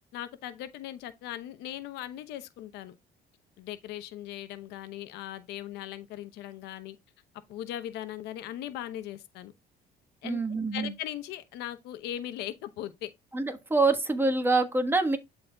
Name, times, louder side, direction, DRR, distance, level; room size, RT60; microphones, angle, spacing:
voice 1, 0.1-2.9 3.6-7.0 7.5-9.5 10.2-10.4 10.7-13.1, left 12 dB, 90° left, 0.9 m, -39 dB
voice 2, 10.2-10.9 13.3-15.2, right 3 dB, 15° right, 1.3 m, -25 dB
12.0 x 4.1 x 2.3 m
cardioid pair, 110°, 17 cm